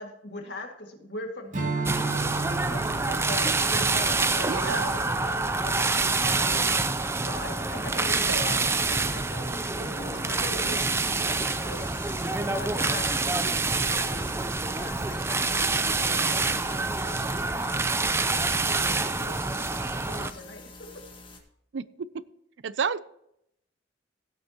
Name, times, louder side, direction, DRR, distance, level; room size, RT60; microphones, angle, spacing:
voice 1, 0.0-2.3 2.7-6.6 7.2-11.8 12.4-14.3 14.8-16.4 16.7-18.0 18.3-18.5 19.0-19.4 20.1-20.6, left 2 dB, 65° left, 2.1 m, -41 dB
Strum, 1.5-6.2, right 4 dB, 40° right, 2.4 m, -35 dB
sound 1, 1.9-20.3, right 3 dB, 15° right, 0.4 m, -27 dB
sound 2, 2.2-21.4, left 2 dB, 25° left, 1.5 m, -45 dB
voice 2, 4.5-5.0 8.3-8.6 21.7-21.8 22.6-23.0, right 6 dB, 75° right, 0.5 m, -30 dB
16.5 x 8.0 x 2.9 m
head